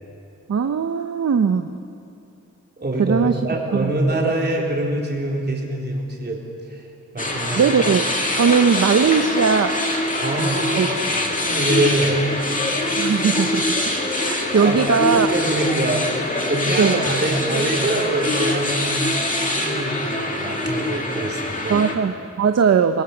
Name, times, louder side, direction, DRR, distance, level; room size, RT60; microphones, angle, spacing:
voice 1, 0.5-1.7 3.0-3.4 3.7-3.9 7.5-8.1 8.3-9.8 10.8-10.9 13.0-13.8 14.2-15.3 16.8-17.0 21.7-23.0, right 6 dB, 55° right, 8 dB, 0.8 m, -19 dB
voice 2, 2.8-6.9 7.1-7.7 10.2-12.3 14.6-16.1 16.5-19.0 19.5-21.8, right 1 dB, 35° right, -1 dB, 3.7 m, -24 dB
sound 1, 7.2-21.9, left 1 dB, 25° left, 2.2 m, -24 dB
25.0 x 21.5 x 7.2 m, 2.5 s
wide cardioid pair, 170°, 30 cm